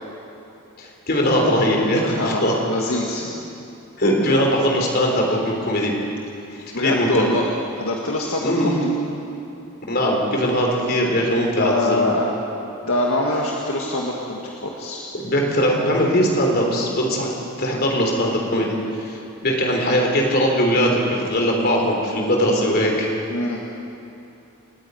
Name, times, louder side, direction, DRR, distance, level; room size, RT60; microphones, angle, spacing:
voice 1, 0.8-2.6 4.0-5.9 6.8-7.2 8.4-8.8 9.9-12.1 15.2-17.3 17.6-23.1, equal, 45° left, 0 dB, 3.9 m, -20 dB
voice 2, 2.0-3.2 6.7-8.9 11.6-12.3 12.9-15.0 23.3-23.6, left 1 dB, 70° left, -2 dB, 1.8 m, -24 dB
29.0 x 9.8 x 9.4 m, 2.7 s
head